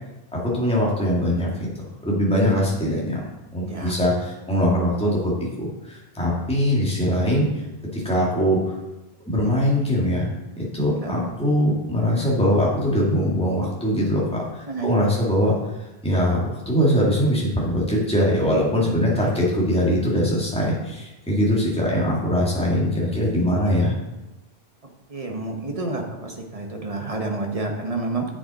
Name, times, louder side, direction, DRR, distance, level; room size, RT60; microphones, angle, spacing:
voice 1, 0.3-7.5 7.9-8.8 9.3-10.3 10.6-15.6 16.0-23.9, equal, 5° left, -5 dB, 2.0 m, -22 dB
voice 2, 25.1-28.3, right 2 dB, 35° right, 2 dB, 1.2 m, -29 dB
7.8 x 7.4 x 4.2 m, 1.0 s
omnidirectional pair, 1.1 m